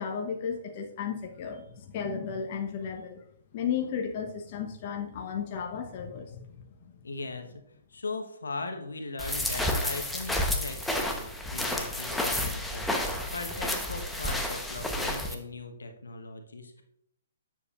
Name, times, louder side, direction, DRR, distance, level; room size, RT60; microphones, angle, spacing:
voice 1, 0.0-3.2 3.5-6.9, left 7 dB, 45° left, 4 dB, 0.9 m, -34 dB
voice 2, 7.0-7.6 7.9-16.8, left 3 dB, 80° left, 6 dB, 1.1 m, -39 dB
sound 1, 9.2-15.3, left 1 dB, 5° left, 0.9 m, -31 dB
9.6 x 7.2 x 2.4 m, 0.75 s
figure-of-eight pair, 130°, 0 cm